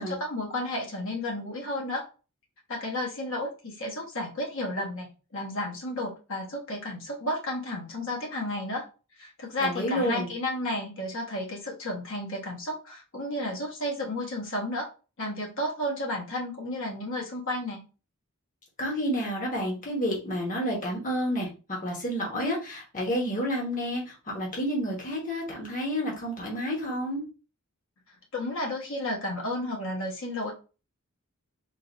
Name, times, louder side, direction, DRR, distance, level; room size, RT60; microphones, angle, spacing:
voice 1, 0.0-2.0 2.7-8.8 9.2-14.9 15.2-17.8 28.3-30.5, left 1 dB, 65° left, -2 dB, 1.3 m, -32 dB
voice 2, 9.6-10.3 18.8-27.2, equal, 40° left, -2 dB, 1.2 m, -30 dB
3.8 x 2.5 x 3.9 m, 0.33 s
head